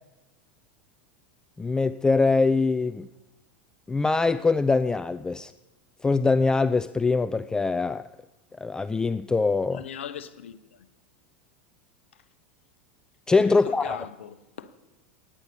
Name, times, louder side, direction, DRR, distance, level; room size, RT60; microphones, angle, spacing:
voice 1, 1.6-3.1 3.9-5.5 6.0-8.0 8.6-9.8 13.3-14.0, left 3 dB, 10° left, 0.3 m, -23 dB
voice 2, 9.7-10.9 12.1-12.2 13.5-14.7, left 9 dB, 80° left, 0.8 m, -40 dB
9.9 x 9.0 x 6.7 m
hypercardioid pair, 95°, 6 cm